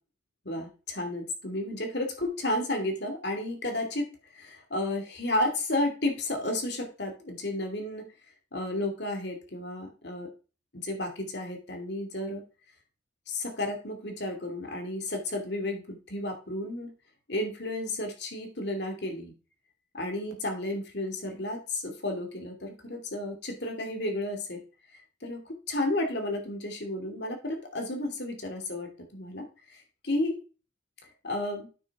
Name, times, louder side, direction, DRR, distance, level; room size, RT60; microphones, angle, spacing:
voice 1, 0.4-8.0 8.5-10.3 10.8-12.4 13.3-16.9 17.3-19.3 19.9-24.6 25.2-30.4 31.2-31.7, left 1 dB, 55° left, 4 dB, 2.5 m, -32 dB
8.9 x 6.3 x 4.7 m, 0.35 s
head